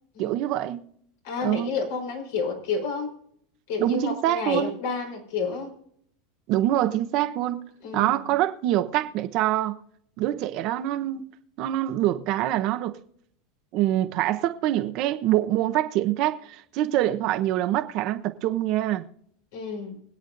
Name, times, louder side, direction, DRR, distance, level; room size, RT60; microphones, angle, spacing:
voice 1, 0.2-0.8 1.4-1.7 3.8-4.8 6.5-7.7 7.9-9.8 10.2-11.3 11.6-13.0 13.7-19.1, right 13 dB, 55° right, 0.9 m, -25 dB
voice 2, 1.2-3.1 3.7-5.7 7.8-8.3 19.5-20.0, left 4 dB, 75° left, 4.4 m, -30 dB
24.5 x 8.2 x 2.6 m
supercardioid pair, 115°, 0 cm